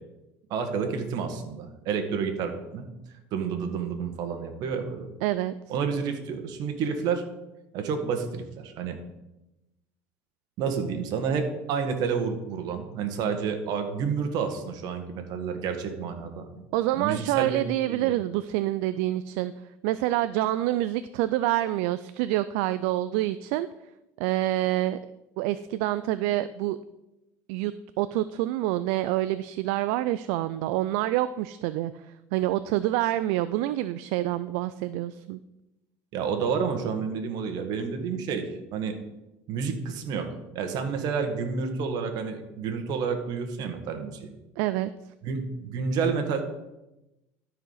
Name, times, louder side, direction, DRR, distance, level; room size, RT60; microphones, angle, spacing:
voice 1, 0.5-2.9 3.3-5.1 5.7-7.2 7.7-9.0 10.6-16.6 17.0-18.1 36.1-39.0 39.5-40.3 40.6-44.3 45.2-46.4, right 6 dB, 60° right, 6 dB, 1.7 m, -30 dB
voice 2, 5.2-5.5 16.7-19.5 19.8-23.7 24.2-25.0 25.4-26.8 27.5-27.7 28.0-35.4 44.6-44.9, right 15 dB, 75° right, 13 dB, 0.4 m, -27 dB
13.0 x 4.9 x 5.7 m, 0.96 s
supercardioid pair, 110°, 8 cm